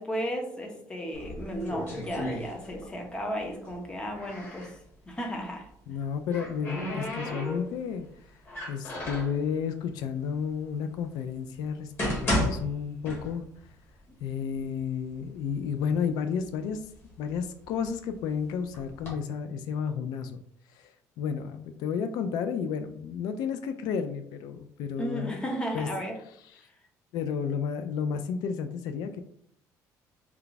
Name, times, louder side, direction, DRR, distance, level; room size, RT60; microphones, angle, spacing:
voice 1, 0.0-4.8 5.1-5.7 25.0-26.2, equal, 15° left, 2 dB, 0.7 m, -34 dB
sound 1, 1.1-3.0 3.3-4.7 5.9-7.9 8.5-9.4 10.2-10.3 10.9-11.0 11.7-13.6 14.0-14.1 14.8-14.9 15.2-15.9 16.4-18.1 18.7-19.1, left 1 dB, 30° left, 1.7 m, -33 dB
voice 2, 5.9-8.1 8.7-11.9 12.2-13.4 14.2-16.9 17.2-20.4 20.7-25.4 25.7-25.9 26.5-26.7 27.1-29.2, left 7 dB, 75° left, 8 dB, 0.3 m, -32 dB
4.4 x 2.3 x 3.9 m, 0.68 s
cardioid pair, 165°, 7 cm